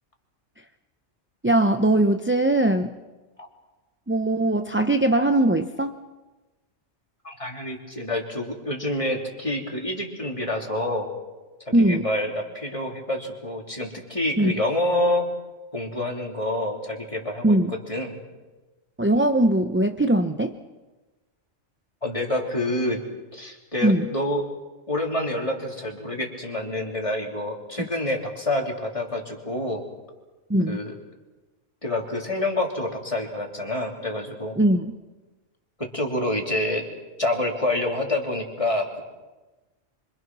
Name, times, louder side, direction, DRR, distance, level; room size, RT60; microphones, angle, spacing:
voice 1, 1.4-3.0 4.1-5.9 11.7-12.1 14.4-14.5 17.4-17.7 19.0-20.6 23.8-24.1 30.5-30.8 34.6-35.0, right 1 dB, 10° right, 7 dB, 0.6 m, -20 dB
voice 2, 7.2-11.1 11.7-15.3 15.7-18.2 22.0-23.0 23.3-24.4 24.9-29.9 30.7-30.9 31.8-34.6 35.8-36.8 37.2-39.0, left 1 dB, 25° left, 1 dB, 3.3 m, -27 dB
25.5 x 25.0 x 6.2 m, 1.2 s
omnidirectional pair, 1.3 m